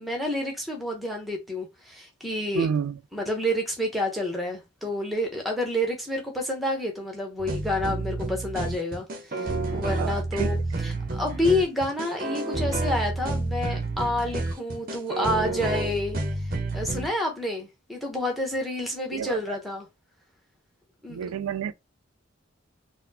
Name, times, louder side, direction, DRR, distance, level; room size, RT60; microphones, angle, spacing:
voice 1, 0.0-2.7 3.1-16.2 16.7-19.9 21.0-21.2, left 1 dB, ahead, 0.7 m, -29 dB
voice 2, 2.5-3.0 9.8-10.5 19.1-19.6 21.1-21.7, right 7 dB, 90° right, 0.3 m, -30 dB
sound 1, 7.4-17.1, right 2 dB, 40° right, 0.6 m, -29 dB
4.0 x 2.0 x 2.7 m
head